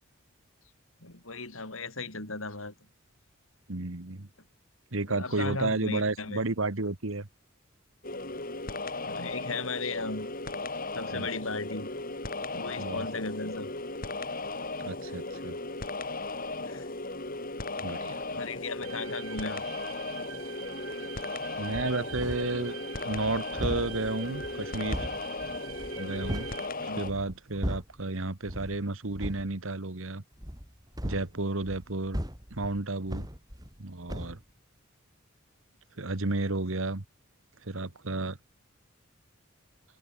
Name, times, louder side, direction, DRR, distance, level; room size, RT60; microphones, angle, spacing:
voice 1, 1.0-2.7 5.1-6.4 9.0-10.3 10.9-11.9 12.5-13.7 14.6-14.7 16.7-16.9 18.3-19.7 21.0-21.1 26.9-27.0, left 3 dB, 75° left, 6.4 m, -36 dB
voice 2, 3.7-4.3 4.9-7.3 11.1-11.3 12.8-13.0 14.8-15.6 17.8-18.2 21.6-22.8 23.0-25.0 26.0-26.5 26.8-30.2 31.0-32.2 32.5-33.3 33.8-34.4 36.0-37.0 37.6-38.4, right 2 dB, 70° right, 1.7 m, -32 dB
sound 1, 8.0-27.1, left 2 dB, 45° left, 4.7 m, -36 dB
sound 2, 18.8-26.7, right 8 dB, 85° right, 6.4 m, -45 dB
sound 3, 21.7-22.6 22.9-26.6 27.0-28.0 28.4-28.8 29.1-29.5 30.4-33.8 34.1-34.4, equal, 20° right, 7.8 m, -38 dB
head